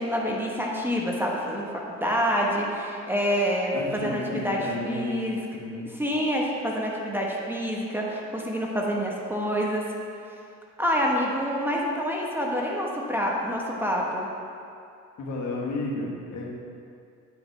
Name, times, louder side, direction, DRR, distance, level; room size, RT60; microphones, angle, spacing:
voice 1, 0.0-4.6 4.8-5.4 6.0-9.8 10.8-14.3, equal, 5° right, -2 dB, 1.0 m, -27 dB
voice 2, 3.7-5.9 15.2-16.4, left 2 dB, 65° left, -2 dB, 1.3 m, -32 dB
9.0 x 5.1 x 3.2 m, 2.4 s
cardioid pair, 90°, 30 cm